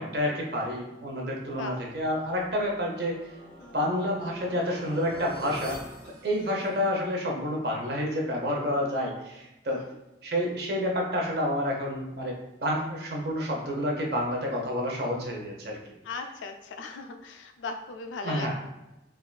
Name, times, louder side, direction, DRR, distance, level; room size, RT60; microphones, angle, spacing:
voice 1, 0.0-3.2 3.7-5.8 6.2-9.8 10.2-15.8 18.2-18.5, equal, 60° right, 0 dB, 0.6 m, -29 dB
sound 1, 1.9-7.1, right 1 dB, 80° right, 1.3 m, -44 dB
voice 2, 16.0-18.5, left 4 dB, 90° left, 6 dB, 0.3 m, -38 dB
3.4 x 2.4 x 2.2 m, 0.96 s
head